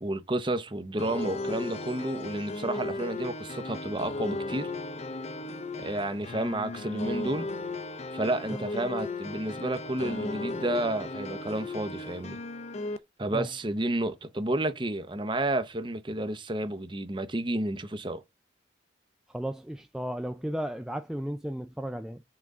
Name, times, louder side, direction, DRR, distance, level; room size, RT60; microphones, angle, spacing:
voice 1, 0.0-4.7 5.8-7.5 8.1-12.4 13.2-18.2, right 1 dB, 25° right, 0.8 m, -31 dB
sound 1, 1.0-13.0, left 2 dB, 40° left, 0.6 m, -36 dB
voice 2, 19.3-22.2, equal, 5° right, 0.3 m, -34 dB
5.9 x 3.9 x 4.8 m
head